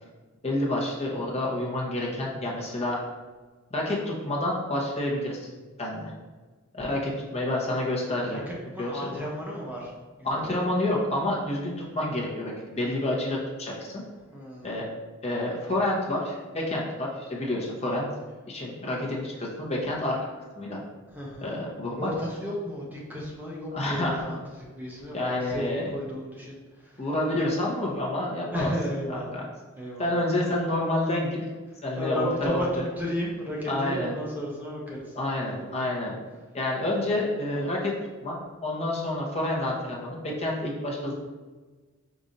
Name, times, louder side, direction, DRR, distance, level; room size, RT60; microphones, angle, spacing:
voice 1, 0.4-3.0 3.7-5.5 5.8-6.1 6.7-8.4 8.8-9.2 10.2-14.0 14.6-14.9 15.2-18.1 18.5-20.3 20.5-20.8 21.4-22.1 23.7-24.3 25.1-25.9 27.0-28.7 29.3-29.4 30.0-31.4 31.8-32.9 33.7-34.1 35.1-36.1 36.5-37.9 38.2-41.1, left 1 dB, 30° left, -3 dB, 0.9 m, -28 dB
voice 2, 8.3-9.9 10.2-10.6 14.3-14.7 21.1-21.5 22.0-27.1 28.5-29.3 29.8-30.1 32.0-35.2 35.4-35.8, equal, 10° right, -4 dB, 0.7 m, -34 dB
4.9 x 2.6 x 4.0 m, 1.3 s
head